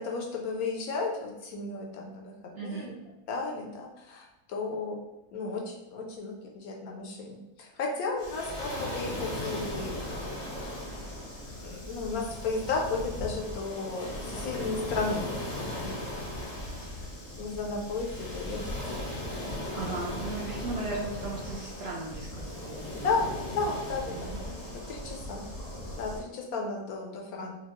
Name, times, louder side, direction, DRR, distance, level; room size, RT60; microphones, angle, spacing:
voice 1, 0.0-2.2 2.6-2.9 3.3-5.0 5.3-10.3 11.6-16.0 16.2-16.4 17.4-18.6 18.9-19.1 23.0-25.4 26.0-27.5, left 4 dB, 75° left, 0 dB, 1.0 m, -34 dB
voice 2, 2.5-2.9 19.7-23.3 24.1-24.4, right 3 dB, 60° right, -5 dB, 0.6 m, -37 dB
Waves surf, 8.2-26.2, left 1 dB, 40° left, 0.6 m, -37 dB
4.2 x 2.3 x 2.9 m, 0.98 s
omnidirectional pair, 1.7 m